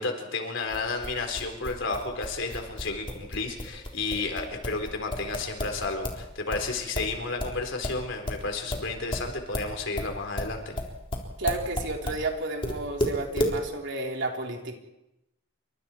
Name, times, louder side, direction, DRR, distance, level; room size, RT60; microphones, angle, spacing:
voice 1, 0.0-10.8, left 3 dB, 65° left, 5 dB, 4.1 m, -32 dB
sound 1, 0.7-6.2 6.5-12.2 12.6-13.6, left 1 dB, 25° left, 3.8 m, -32 dB
voice 2, 11.4-14.8, right 2 dB, 65° right, 1 dB, 3.7 m, -32 dB
28.5 x 25.0 x 4.5 m, 0.89 s
head